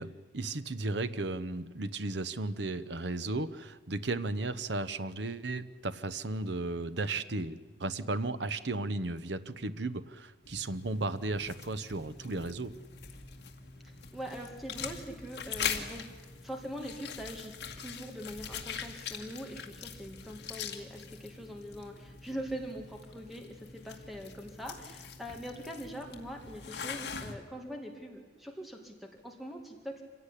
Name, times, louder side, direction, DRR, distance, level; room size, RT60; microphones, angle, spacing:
voice 1, 0.0-12.8, right 2 dB, 70° right, 12 dB, 0.9 m, -35 dB
sound 1, 10.4-27.3, left 7 dB, 70° left, 2.1 m, -42 dB
voice 2, 13.8-30.0, equal, ahead, 2 dB, 2.3 m, -43 dB
25.5 x 16.5 x 10.0 m, 1.4 s
head